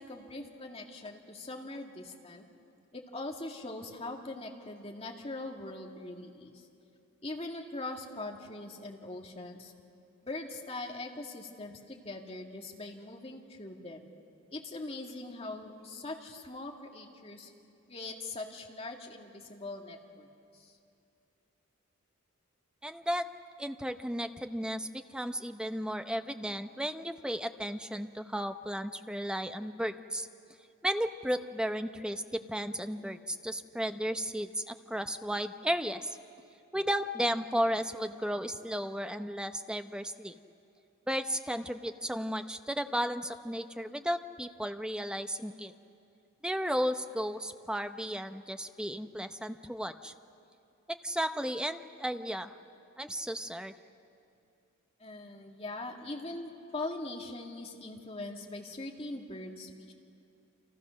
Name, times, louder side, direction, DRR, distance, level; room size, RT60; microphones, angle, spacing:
voice 1, 0.0-2.5 2.9-6.7 7.2-9.7 10.2-14.1 14.5-17.5 17.9-20.3 20.5-20.7 55.0-59.9, left 2 dB, 25° left, 1 dB, 2.1 m, -41 dB
voice 2, 22.8-23.3 23.6-30.3 30.8-36.2 36.7-40.4 41.1-45.7 46.4-50.1 50.9-52.5 53.0-53.7, equal, 5° right, 8 dB, 0.7 m, -34 dB
30.0 x 26.5 x 6.4 m, 2.6 s
head